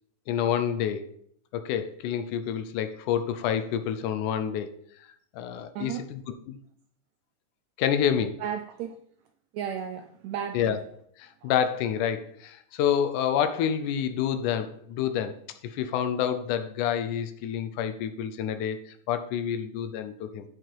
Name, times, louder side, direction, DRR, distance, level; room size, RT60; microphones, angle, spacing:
voice 1, 0.3-1.1 1.5-4.8 5.3-6.2 6.5-6.6 7.8-8.4 10.5-10.8 11.2-15.3 15.6-18.8 19.1-20.5, left 9 dB, 80° left, 2.2 m, -28 dB
voice 2, 5.7-6.1 8.4-9.0 9.5-10.8 11.4-11.5, right 8 dB, 80° right, 1.6 m, -34 dB
14.5 x 4.9 x 4.6 m
omnidirectional pair, 3.7 m